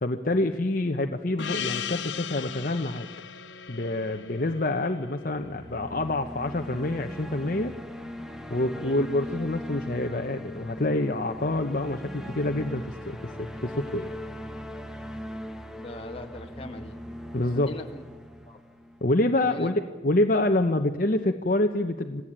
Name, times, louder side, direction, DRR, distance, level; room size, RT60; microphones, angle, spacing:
voice 1, 0.0-3.1 3.7-7.7 8.5-14.1 17.3-17.7 19.0-22.2, left 1 dB, 50° left, 5 dB, 1.0 m, -27 dB
Gong, 1.4-6.2, left 8 dB, 85° left, 0.9 m, -37 dB
sound 1, 5.2-19.4, equal, 5° right, 1.4 m, -39 dB
voice 2, 15.8-17.0 17.5-18.0 18.5-18.6 19.4-19.7, left 1 dB, 30° left, 3 dB, 2.0 m, -40 dB
26.5 x 17.0 x 8.9 m, 1.4 s
head